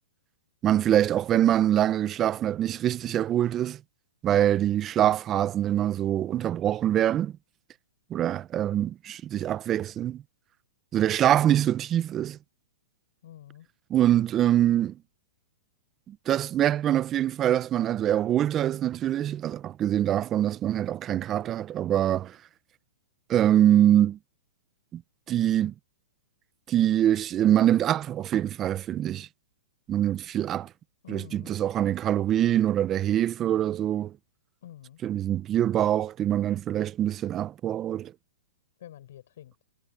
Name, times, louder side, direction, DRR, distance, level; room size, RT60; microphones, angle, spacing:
voice 1, 0.6-3.8 4.2-7.3 8.1-10.2 10.9-12.4 13.9-15.0 16.1-22.4 23.3-24.2 24.9-25.0 25.3-25.7 26.7-29.3 29.9-30.7 31.1-34.1 35.0-38.1, right 11 dB, 20° right, 0.6 m, -24 dB
voice 2, 13.2-13.7 31.0-31.5 34.6-35.0 38.8-39.5, left 12 dB, 65° left, 6.7 m, -47 dB
hypercardioid pair, 145°, 0 cm